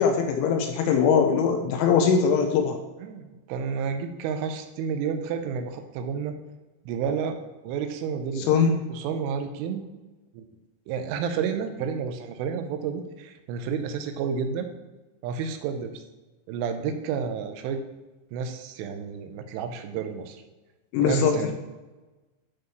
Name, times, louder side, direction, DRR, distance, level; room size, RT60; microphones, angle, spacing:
voice 1, 0.0-2.8 8.5-8.8 20.9-21.5, left 6 dB, 85° left, 4 dB, 3.0 m, -21 dB
voice 2, 3.0-6.3 6.9-7.4 7.6-9.8 10.3-10.5 10.9-14.7 15.2-15.9 16.5-17.8 18.3-20.4 21.0-21.5, right 6 dB, 80° right, 7 dB, 3.1 m, -30 dB
11.5 x 4.7 x 3.1 m, 1.2 s
omnidirectional pair, 5.8 m